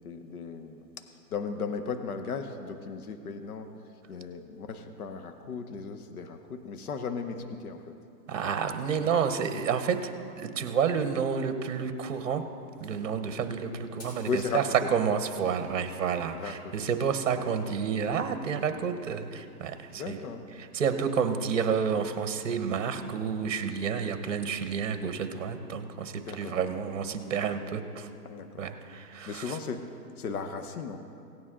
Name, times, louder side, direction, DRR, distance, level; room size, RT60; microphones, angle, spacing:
voice 1, 0.0-7.9 13.4-13.6 14.3-14.9 16.3-16.9 17.3-17.5 18.7-18.8 19.9-20.5 21.0-21.3 26.2-26.6 28.2-28.7 29.2-29.9 30.2-31.0, left 5 dB, 60° left, 7 dB, 1.0 m, -36 dB
voice 2, 8.3-12.4 12.8-14.6 14.9-20.2 20.6-28.1 28.6-29.5, right 6 dB, 50° right, 9 dB, 1.0 m, -30 dB
sound 1, 12.7-13.2 14.0-14.5 14.8-15.5 16.5-16.6, left 1 dB, 40° left, 3.1 m, -52 dB
17.5 x 9.4 x 3.7 m, 2.5 s
hypercardioid pair, 170°, 49 cm